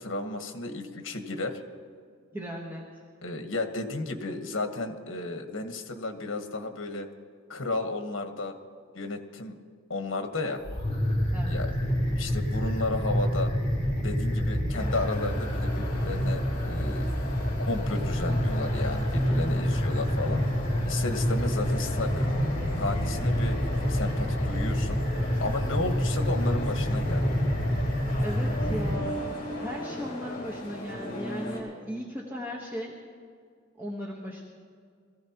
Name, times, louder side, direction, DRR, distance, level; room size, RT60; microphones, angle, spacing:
voice 1, 0.0-1.6 3.2-7.1 7.5-8.5 8.9-9.5 9.9-10.6 11.5-13.5 14.0-17.2 17.6-20.4 20.8-22.3 22.7-23.6 23.9-25.0 25.4-27.4, left 2 dB, 70° left, 6 dB, 1.3 m, -33 dB
voice 2, 2.3-3.0 11.3-11.6 28.2-33.0 33.8-34.4, equal, 10° right, -4 dB, 1.1 m, -37 dB
sound 1, 10.6-29.0, equal, 30° left, 2.9 m, -27 dB
sound 2, 14.7-31.6, left 1 dB, 50° left, 3.4 m, -38 dB
22.0 x 15.0 x 2.9 m, 2.1 s
head